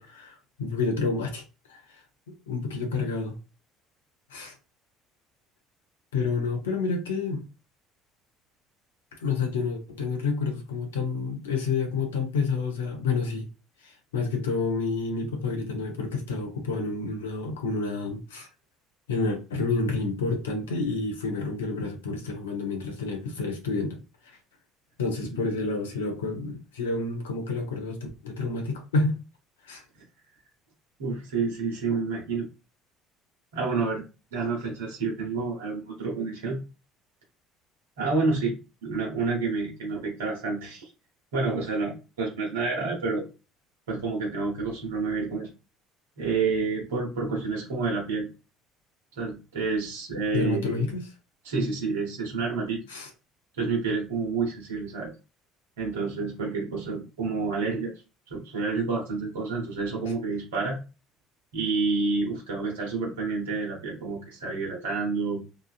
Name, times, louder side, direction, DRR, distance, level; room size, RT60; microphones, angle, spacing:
voice 1, 0.0-1.4 1.7-2.0 2.3-3.4 4.3-4.6 6.1-7.4 9.1-13.5 13.8-18.5 19.1-24.0 24.2-24.4 25.0-29.2 29.6-29.8 50.3-51.0 52.9-53.1, left 4 dB, 85° left, 0.7 m, -29 dB
voice 2, 31.0-32.5 33.5-34.0 34.3-36.6 38.0-38.5 38.8-40.9 41.3-43.2 43.9-45.5 46.2-48.3 49.2-50.9 51.4-52.8 53.6-55.1 55.8-57.9 58.3-60.8 61.5-65.4, right 4 dB, 80° right, 0.9 m, -29 dB
3.1 x 2.3 x 2.4 m
hypercardioid pair, 60°, 0 cm